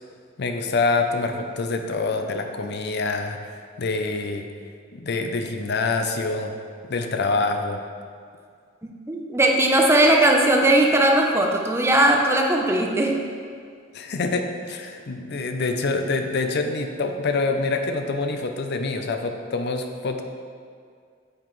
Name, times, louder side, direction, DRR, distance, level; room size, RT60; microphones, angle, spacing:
voice 1, 0.4-3.5 3.8-4.5 4.9-6.6 6.9-7.8 13.9-20.2, left 3 dB, 55° left, 5 dB, 0.6 m, -26 dB
voice 2, 9.1-13.2, right 1 dB, 15° right, 1 dB, 0.7 m, -18 dB
8.8 x 7.9 x 3.2 m, 2.1 s
head